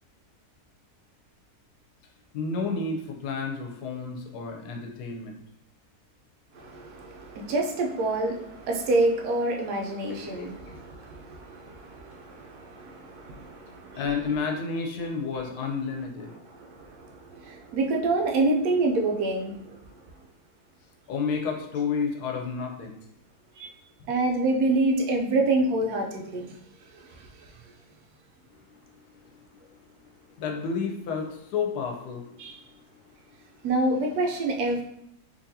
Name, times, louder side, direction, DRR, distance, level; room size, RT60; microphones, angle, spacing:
voice 1, 2.3-5.4 10.1-10.7 13.9-16.3 21.1-23.0 30.4-32.3, left 5 dB, 85° left, 1 dB, 1.2 m, -31 dB
voice 2, 6.5-14.1 16.5-19.8 23.6-23.7 24.1-26.6 26.9-27.5 32.4-32.6 33.6-34.8, right 2 dB, 80° right, 2 dB, 1.1 m, -27 dB
3.9 x 2.8 x 2.7 m, 0.79 s
omnidirectional pair, 1.6 m